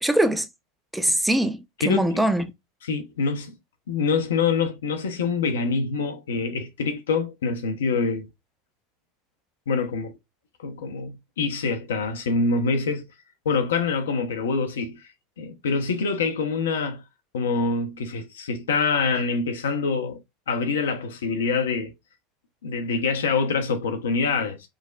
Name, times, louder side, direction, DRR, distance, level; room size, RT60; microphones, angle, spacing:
voice 1, 0.0-0.5 0.9-2.5, right 1 dB, 5° right, 0.5 m, -22 dB
voice 2, 1.8-2.2 2.8-3.6 3.9-8.3 9.7-10.2 10.6-13.0 13.4-15.0 15.4-17.0 17.3-20.2 20.5-21.9 22.6-24.7, left 4 dB, 75° left, 0.6 m, -25 dB
4.8 x 2.1 x 2.4 m
figure-of-eight pair, 80°, 0 cm